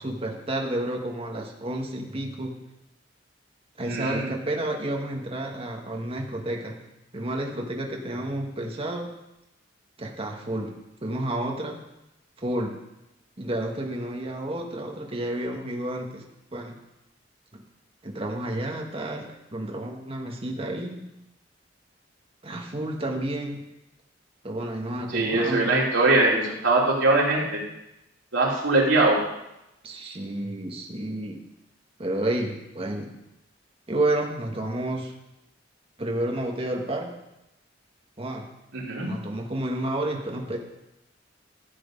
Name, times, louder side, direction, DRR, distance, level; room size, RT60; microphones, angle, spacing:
voice 1, 0.0-2.6 3.8-6.9 7.1-9.1 10.0-10.7 11.0-11.8 12.4-12.8 13.4-16.2 16.5-16.8 17.5-17.6 18.0-21.0 22.4-23.6 24.4-25.7 29.8-31.4 32.0-33.1 33.9-35.1 36.0-37.1 38.2-38.5 39.0-40.6, right 1 dB, 30° right, 1 dB, 1.3 m, -30 dB
voice 2, 3.8-4.3 25.1-27.6 28.3-29.2 38.7-39.1, right 2 dB, 80° right, -4 dB, 3.1 m, -22 dB
13.5 x 7.8 x 5.1 m, 0.90 s
head